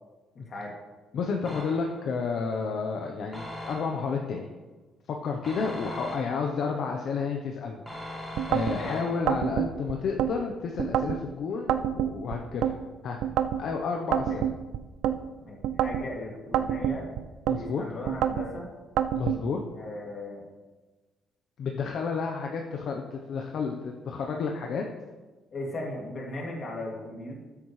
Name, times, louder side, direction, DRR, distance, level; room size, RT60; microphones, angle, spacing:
voice 1, 1.1-4.5 5.1-7.8 8.1-13.2 13.6-14.5 17.5-17.8 19.1-19.6 21.6-24.8, left 5 dB, 55° left, 2 dB, 0.9 m, -31 dB
sound 1, 1.5-2.1 3.3-4.2 5.4-6.6 7.9-9.5, left 1 dB, ahead, 1.9 m, -40 dB
sound 2, 8.4-8.8 9.3-10.3 10.8-11.2 11.7-12.7 13.2-13.6 14.1-15.2 15.6-16.1 16.5-17.6 18.1-18.5 19.0-19.4, right 10 dB, 85° right, 0.5 m, -27 dB
voice 2, 15.4-17.1 17.6-18.7 19.8-20.4 25.5-27.4, left 2 dB, 40° left, -2 dB, 2.4 m, -37 dB
13.0 x 8.5 x 3.2 m, 1.2 s
cardioid pair, 155°, 0 cm